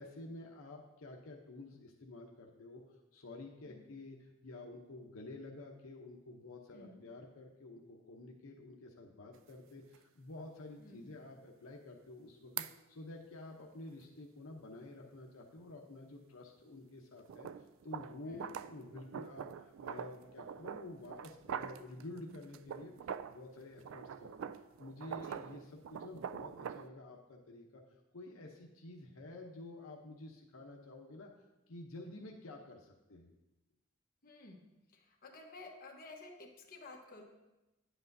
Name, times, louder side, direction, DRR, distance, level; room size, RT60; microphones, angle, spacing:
voice 1, 0.0-2.8 3.1-12.6 12.9-22.9 23.3-24.5 24.8-27.8 28.1-31.3 31.7-33.3, left 2 dB, 85° left, 0 dB, 0.8 m, -50 dB
voice 2, 6.7-7.0 10.8-11.2 18.2-18.5 25.2-25.4 34.2-34.7 34.9-37.2, left 3 dB, 45° left, 0 dB, 1.2 m, -53 dB
sound 1, 9.3-9.4 9.9-10.0 12.6-12.7 17.3-23.4 23.8-26.9, right 8 dB, 65° right, 0.3 m, -44 dB
10.0 x 8.0 x 2.7 m, 1.0 s
head